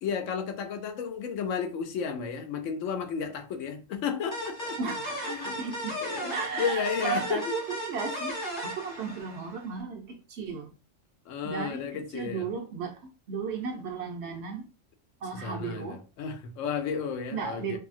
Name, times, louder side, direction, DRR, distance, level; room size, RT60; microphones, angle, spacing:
voice 1, 0.0-4.8 5.3-5.6 6.0-7.6 11.3-12.5 15.4-17.8, left 6 dB, 75° left, 0.9 m, -33 dB
sound 1, 4.3-9.7, equal, 45° left, 1.0 m, -36 dB
voice 2, 4.8-6.0 6.3-10.7 11.4-14.7 15.2-16.0 17.3-17.8, right 5 dB, 65° right, 0.9 m, -35 dB
2.7 x 2.7 x 2.5 m
omnidirectional pair, 1.3 m